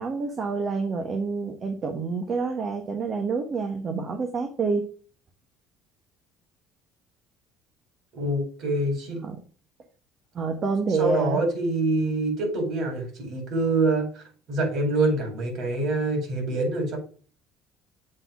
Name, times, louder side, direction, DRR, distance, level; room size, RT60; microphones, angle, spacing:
voice 1, 0.0-4.9 9.2-9.4 10.3-11.4, right 4 dB, 35° right, 4 dB, 1.1 m, -28 dB
voice 2, 8.1-9.2 11.0-17.0, right 2 dB, 50° right, 2 dB, 4.5 m, -25 dB
7.7 x 3.9 x 5.9 m, 0.39 s
cardioid pair, 140°, 0 cm